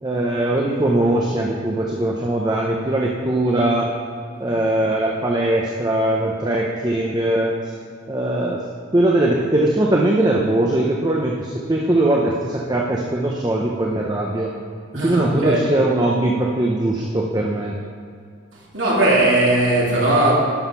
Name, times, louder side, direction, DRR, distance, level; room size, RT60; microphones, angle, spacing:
voice 1, 0.0-3.9 4.4-7.6 8.1-8.6 8.9-14.5 15.0-17.7, right 1 dB, 20° right, -2 dB, 0.7 m, -20 dB
voice 2, 14.9-15.7 18.7-20.3, right 2 dB, 75° right, -5 dB, 2.7 m, -18 dB
12.0 x 5.6 x 5.6 m, 2.2 s
head